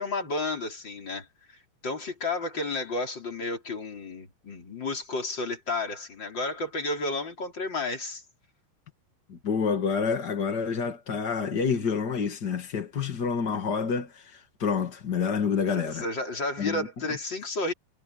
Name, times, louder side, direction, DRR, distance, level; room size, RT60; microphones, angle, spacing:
voice 1, 0.0-8.2 15.6-17.7, left 2 dB, 25° left, 4.3 m, -32 dB
voice 2, 9.3-16.0 16.6-16.9, left 6 dB, 45° left, 1.4 m, -28 dB
omnidirectional pair, 5.1 m